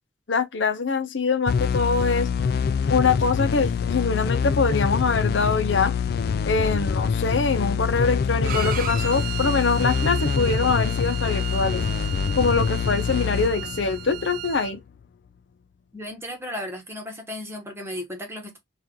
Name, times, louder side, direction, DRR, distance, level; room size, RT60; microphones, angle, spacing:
voice 1, 0.3-2.3 2.9-5.9 6.5-11.8 12.4-14.8, left 4 dB, 70° left, 0.7 m, -23 dB
sound 1, 1.5-14.8, left 6 dB, 55° left, 0.3 m, -25 dB
Bowed string instrument, 8.5-14.7, right 11 dB, 50° right, 0.6 m, -35 dB
voice 2, 15.9-18.6, left 1 dB, 15° right, 1.2 m, -35 dB
4.4 x 2.5 x 3.6 m
head